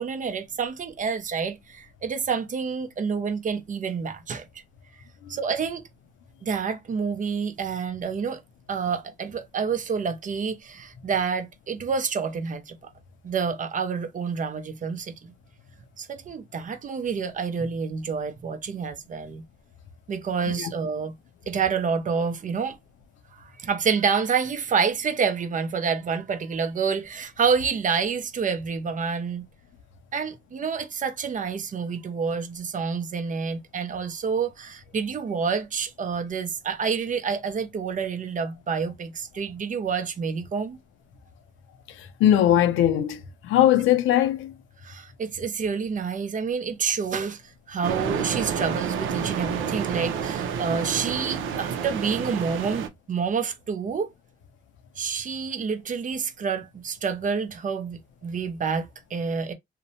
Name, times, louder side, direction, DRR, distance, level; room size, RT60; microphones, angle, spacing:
voice 1, 0.0-4.5 5.3-5.9 6.4-8.4 8.7-12.9 13.2-15.1 16.0-19.4 20.1-21.1 21.5-22.8 23.4-29.4 30.1-40.8 44.8-47.4 47.7-54.1 55.0-59.5, right 6 dB, 40° right, 0.6 m, -28 dB
voice 2, 42.2-44.5, left 11 dB, 85° left, 0.5 m, -20 dB
sound 1, 47.8-52.9, right 7 dB, 85° right, 0.5 m, -29 dB
2.7 x 2.1 x 2.6 m
cardioid pair, 90°, 20 cm